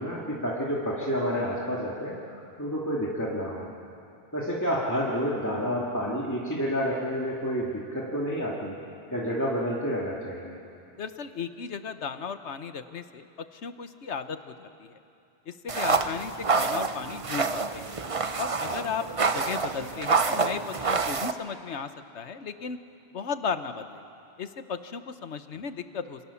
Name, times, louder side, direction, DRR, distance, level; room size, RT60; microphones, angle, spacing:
voice 1, 0.0-3.7 4.3-8.8 9.1-10.6 18.6-18.8, equal, 15° left, -5 dB, 2.5 m, -29 dB
voice 2, 11.0-15.0 15.4-17.9 18.4-19.1 19.3-22.8 23.1-24.0 24.4-26.2, left 6 dB, 90° left, 10 dB, 1.4 m, -35 dB
sound 1, 15.7-21.3, right 4 dB, 35° right, 0.8 m, -27 dB
29.0 x 25.5 x 7.2 m, 2.6 s
omnidirectional pair, 1.1 m